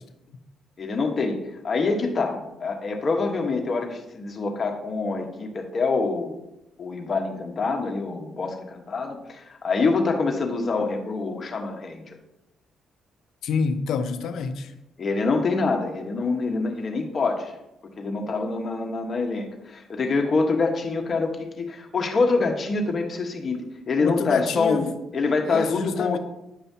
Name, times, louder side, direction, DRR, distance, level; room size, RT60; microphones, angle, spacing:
voice 1, 0.8-1.4 1.6-6.4 6.8-12.2 15.0-17.5 18.0-23.6 23.9-26.2, left 3 dB, 40° left, 1.2 m, -25 dB
voice 2, 13.4-14.7 24.0-24.9 25.5-26.2, left 5 dB, 75° left, 0.6 m, -27 dB
9.1 x 5.4 x 2.8 m
cardioid pair, 90°, 0 cm